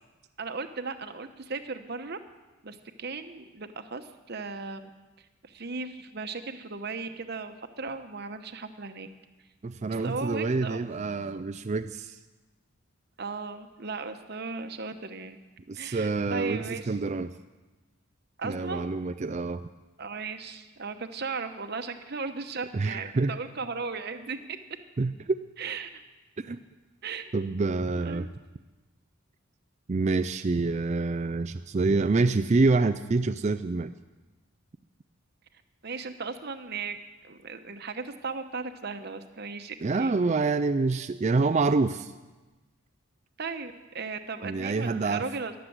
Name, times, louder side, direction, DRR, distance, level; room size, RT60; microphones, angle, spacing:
voice 1, 0.4-2.2 2.6-4.9 5.4-9.1 9.9-10.8 13.2-15.4 15.7-16.9 18.4-19.0 20.0-24.6 25.6-26.0 26.5-26.6 27.0-27.3 27.9-28.3 35.8-37.0 37.2-40.1 43.4-45.5, right 4 dB, 50° right, 8 dB, 1.0 m, -36 dB
voice 2, 9.6-12.2 15.7-17.3 18.4-19.7 22.7-23.4 25.0-25.4 26.4-26.6 27.3-28.3 29.9-33.9 39.8-42.1 44.4-45.2, right 3 dB, 30° right, 10 dB, 0.4 m, -27 dB
13.5 x 11.5 x 7.9 m, 1.2 s
head